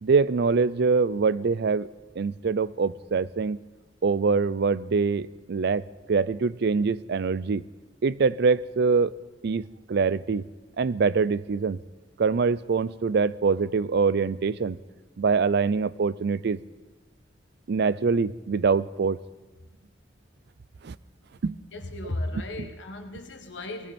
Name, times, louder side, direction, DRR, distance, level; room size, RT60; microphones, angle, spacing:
voice 1, 0.0-1.9 2.2-3.6 4.0-7.6 8.0-9.2 9.4-10.4 10.8-11.8 12.2-14.8 15.2-16.6 17.7-19.2 20.8-21.0 21.4-21.6, right 4 dB, 65° right, 19 dB, 0.4 m, -24 dB
voice 2, 21.7-23.9, left 1 dB, 80° left, 6 dB, 1.6 m, -35 dB
20.0 x 16.5 x 4.3 m, 1.2 s
head